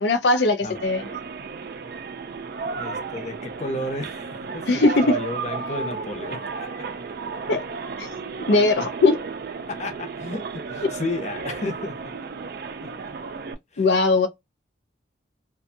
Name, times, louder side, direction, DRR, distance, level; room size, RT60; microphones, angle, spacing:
voice 1, 0.0-1.0 4.7-5.1 7.5-7.6 8.0-8.1 8.5-9.2 13.8-14.3, left 3 dB, 70° left, 0.5 m, -19 dB
sound 1, 0.7-13.5, right 4 dB, 55° right, 0.4 m, -33 dB
voice 2, 2.8-6.9 9.7-12.0 12.8-12.9 13.7-13.9, left 2 dB, 40° left, 0.7 m, -33 dB
2.5 x 2.2 x 2.6 m
head